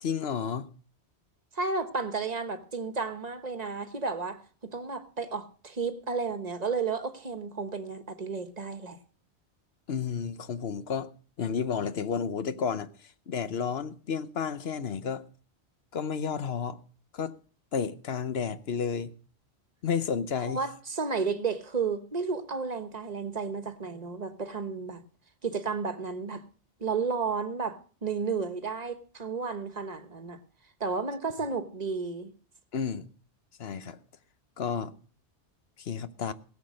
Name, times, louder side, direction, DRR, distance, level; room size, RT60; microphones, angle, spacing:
voice 1, 0.0-0.7 9.9-11.1 11.4-12.9 13.3-15.2 15.9-16.8 17.1-17.4 17.7-19.1 19.8-20.6 32.7-33.1 33.6-34.0 34.6-34.9 35.8-36.3, left 6 dB, 65° left, 1.1 m, -31 dB
voice 2, 1.5-9.0 20.4-25.0 25.4-26.4 26.8-30.4 30.8-32.3, right 4 dB, 40° right, 1.2 m, -32 dB
17.5 x 7.5 x 6.3 m
omnidirectional pair, 1.1 m